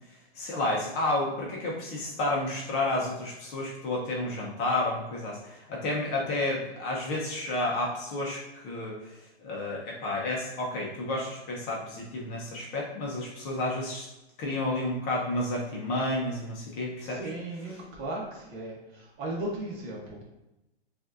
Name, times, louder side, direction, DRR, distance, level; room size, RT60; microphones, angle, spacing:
voice 1, 0.3-9.1 9.4-14.1 14.4-17.3 17.6-17.8, left 2 dB, 30° left, -2 dB, 0.8 m, -31 dB
voice 2, 17.0-17.7 18.0-18.8 19.2-20.2, right 1 dB, 30° right, -3 dB, 1.1 m, -35 dB
5.9 x 2.6 x 2.5 m, 0.95 s
hypercardioid pair, 140°, 33 cm